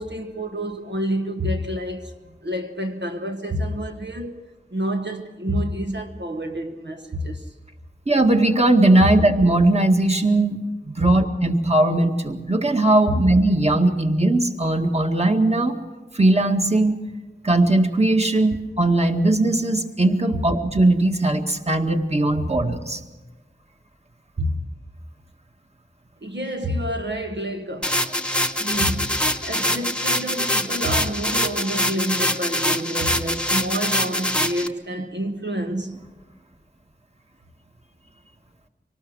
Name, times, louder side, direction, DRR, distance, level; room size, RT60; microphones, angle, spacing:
voice 1, 0.0-2.1 2.4-4.4 4.7-7.5 9.0-9.1 11.0-11.1 13.1-13.2 22.4-22.5 24.4-24.7 26.2-28.2 28.6-36.0, equal, 75° right, 1.2 m, -28 dB
voice 2, 8.1-10.6 10.8-15.8 16.1-16.9 17.4-23.0, right 2 dB, 35° right, 1.9 m, -19 dB
sound 1, 27.8-34.7, left 1 dB, 5° left, 1.2 m, -24 dB
25.5 x 18.5 x 6.4 m
wide cardioid pair, 45°, 18 cm